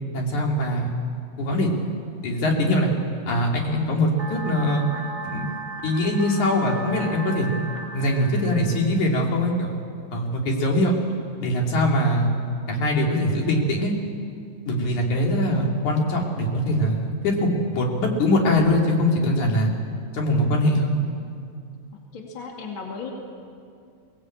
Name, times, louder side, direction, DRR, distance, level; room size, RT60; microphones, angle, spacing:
voice 1, 0.1-0.9 1.4-1.7 2.2-2.9 3.3-4.8 5.2-5.5 5.8-7.5 7.9-9.8 10.1-10.9 11.4-12.3 12.7-13.9 14.7-19.7 20.1-20.9, left 1 dB, 90° left, 0 dB, 4.3 m, -22 dB
sound 1, 4.2-9.2, right 2 dB, 25° right, 2.2 m, -36 dB
voice 2, 22.1-23.1, left 5 dB, 45° left, 0 dB, 3.1 m, -35 dB
23.5 x 19.0 x 8.7 m, 2.4 s
omnidirectional pair, 3.3 m